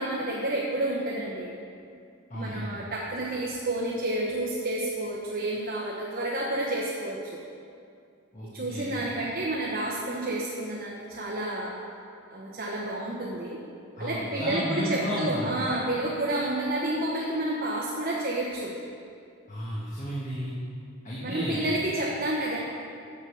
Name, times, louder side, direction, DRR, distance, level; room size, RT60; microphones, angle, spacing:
voice 1, 0.0-1.6 2.3-7.4 8.5-11.8 12.3-13.6 14.0-18.8 21.2-22.6, right 1 dB, 45° right, -4 dB, 1.0 m, -30 dB
voice 2, 2.3-2.8 8.3-9.0 14.0-15.5 19.5-20.5 21.0-21.7, equal, 35° left, -7 dB, 1.3 m, -33 dB
8.2 x 6.8 x 6.4 m, 2.4 s
head